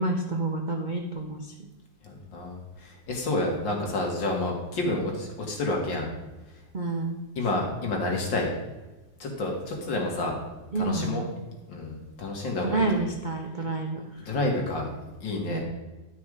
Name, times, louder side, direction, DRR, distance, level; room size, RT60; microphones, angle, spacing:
voice 1, 0.0-1.5 6.7-7.2 10.7-11.3 12.6-14.3 15.5-15.6, right 2 dB, 55° right, 2 dB, 0.5 m, -29 dB
voice 2, 2.0-6.1 7.4-8.5 9.2-10.4 10.8-11.2 11.7-13.0 14.2-14.9 15.2-15.6, left 2 dB, 80° left, 0 dB, 2.6 m, -29 dB
11.0 x 5.9 x 4.8 m, 1.1 s
omnidirectional pair, 2.0 m